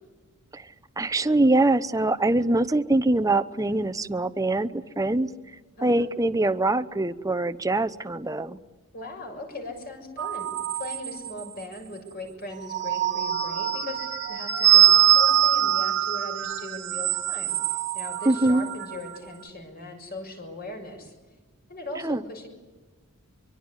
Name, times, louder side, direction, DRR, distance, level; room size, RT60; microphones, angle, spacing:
voice 1, 0.5-5.3 5.8-8.6 18.3-18.7 22.0-22.2, right 2 dB, 15° right, 12 dB, 0.8 m, -23 dB
voice 2, 8.9-10.5 10.8-17.6 17.9-21.1 21.7-22.5, left 2 dB, 45° left, 4 dB, 6.6 m, -39 dB
sound 1, 10.2-11.6 12.5-19.2, right 10 dB, 55° right, 1.6 m, -23 dB
24.5 x 23.5 x 9.9 m, 1.3 s
head